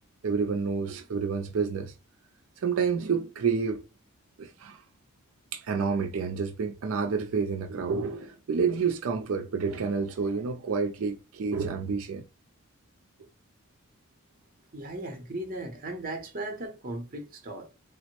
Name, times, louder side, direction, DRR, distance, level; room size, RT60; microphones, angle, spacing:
voice 1, 0.2-1.9 2.6-3.8 4.4-4.8 5.5-12.2, right 5 dB, 80° right, 0.4 m, -29 dB
voice 2, 14.7-17.7, right 1 dB, 45° right, 0.7 m, -37 dB
3.5 x 2.0 x 2.9 m
head